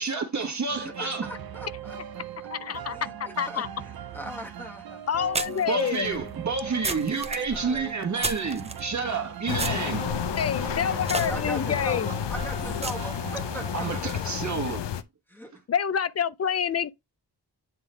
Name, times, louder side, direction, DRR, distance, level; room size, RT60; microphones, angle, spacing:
voice 1, 0.0-1.3 5.7-10.1 13.7-14.9, right 4 dB, 45° right, 1.4 m, -29 dB
voice 2, 0.7-5.0 5.5-5.9 7.5-7.9 10.7-14.3 15.3-15.5, equal, 5° left, 1.4 m, -41 dB
sound 1, 0.7-14.0, right 10 dB, 60° right, 0.7 m, -40 dB
voice 3, 2.5-3.7 5.1-6.2 10.4-12.2 15.7-16.9, left 8 dB, 40° left, 0.4 m, -27 dB
sound 2, 4.3-4.4 5.3-8.8 9.5-13.5, right 3 dB, 15° right, 0.5 m, -35 dB
sound 3, 9.5-15.0, left 10 dB, 85° left, 0.6 m, -31 dB
8.9 x 3.7 x 3.3 m
wide cardioid pair, 140°, 41 cm